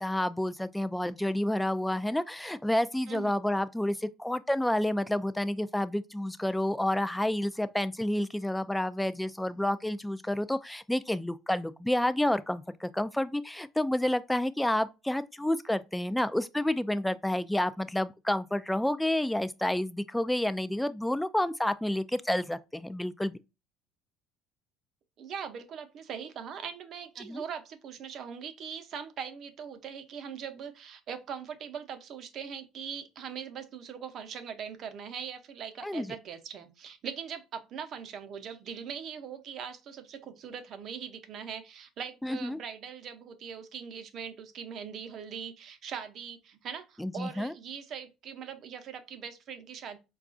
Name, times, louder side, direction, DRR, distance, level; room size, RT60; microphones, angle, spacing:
voice 1, 0.0-23.4 27.3-27.4 35.8-36.1 42.2-42.6 47.0-47.5, left 1 dB, 5° left, 0.3 m, -29 dB
voice 2, 3.1-3.4 25.2-50.0, right 7 dB, 55° right, 0.7 m, -41 dB
4.6 x 2.3 x 2.5 m
supercardioid pair, 100°, 0 cm